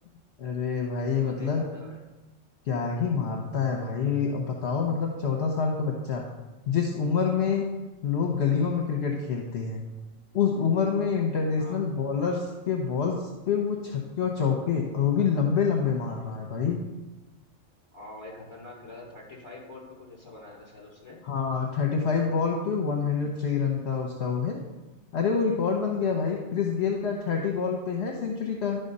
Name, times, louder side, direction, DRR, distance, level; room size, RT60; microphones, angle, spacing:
voice 1, 0.4-1.6 2.7-6.2 6.7-7.6 8.0-9.8 10.3-16.8 21.2-24.6 25.1-28.8, left 6 dB, 60° left, 1 dB, 1.1 m, -27 dB
voice 2, 1.1-2.0 11.6-11.8 17.9-21.2, left 2 dB, 20° left, -4 dB, 2.7 m, -45 dB
11.0 x 3.8 x 5.4 m, 1.1 s
omnidirectional pair, 1.4 m